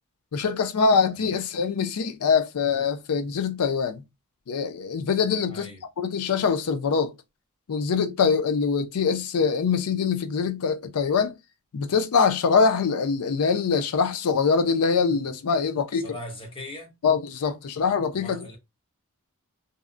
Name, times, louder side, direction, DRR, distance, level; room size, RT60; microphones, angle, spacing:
voice 1, 0.3-4.0 4.5-5.7 6.0-7.1 7.7-11.3 11.7-16.0 17.0-18.6, left 5 dB, 85° left, 0.4 m, -23 dB
voice 2, 5.5-5.8 15.9-16.9 18.1-18.6, left 1 dB, 25° left, 0.8 m, -40 dB
2.7 x 2.0 x 2.4 m
head